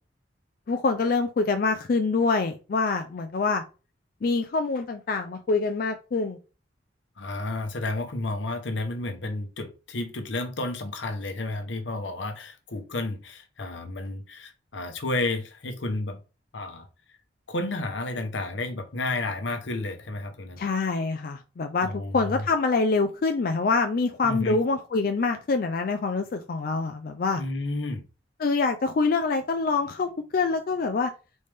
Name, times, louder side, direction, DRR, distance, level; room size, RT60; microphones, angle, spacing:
voice 1, 0.7-3.6 4.2-6.4 20.6-21.9 22.1-27.4 28.4-31.1, left 4 dB, 50° left, 0.4 m, -25 dB
voice 2, 7.2-16.2 16.5-17.2 17.5-20.6 21.8-22.4 24.2-24.6 27.4-28.1, left 2 dB, 80° left, 0.8 m, -31 dB
4.1 x 3.3 x 3.4 m
head